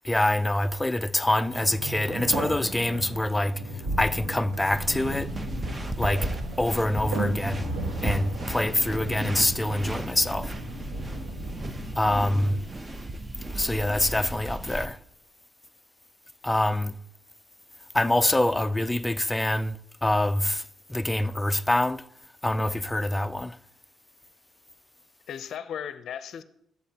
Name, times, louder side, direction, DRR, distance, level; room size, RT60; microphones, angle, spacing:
voice 1, 0.0-3.6 4.0-5.3 6.0-6.3 6.6-7.7 8.0-10.5 12.0-12.6 13.6-15.0 16.4-16.9 17.9-20.6 20.9-22.0 22.4-23.6, left 1 dB, 10° left, 0.4 m, -25 dB
sound 1, 1.5-12.6, right 1 dB, 75° right, 2.5 m, -35 dB
sound 2, 4.7-14.9, right 1 dB, 20° right, 0.8 m, -35 dB
voice 2, 8.6-9.1 25.3-26.4, left 8 dB, 70° left, 0.5 m, -37 dB
13.5 x 8.1 x 2.9 m
cardioid pair, 90°, 0 cm